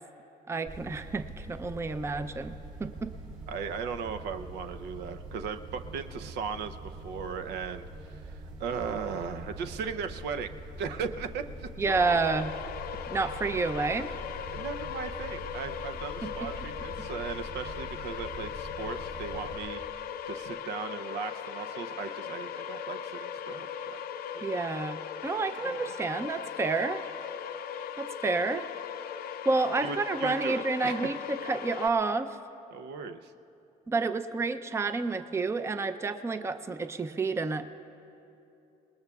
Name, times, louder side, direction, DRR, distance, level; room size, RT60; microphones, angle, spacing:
voice 1, 0.5-3.1 11.8-12.5 13.1-14.1 16.2-16.5 17.0-17.1 24.4-27.0 28.0-28.7 29.5-32.4 33.9-37.7, right 3 dB, 15° right, 10 dB, 0.5 m, -30 dB
sound 1, 0.7-19.6, right 1 dB, 60° right, 4.0 m, -44 dB
voice 2, 3.5-10.5 10.8-11.7 14.5-19.8 20.2-24.0 24.3-24.4 29.8-31.1 32.7-33.3, right 6 dB, 80° right, 8 dB, 0.7 m, -37 dB
sound 2, 11.9-31.9, left 8 dB, 65° left, 0.6 m, -39 dB
26.5 x 20.0 x 2.4 m, 2.8 s
cardioid pair, 110°, 17 cm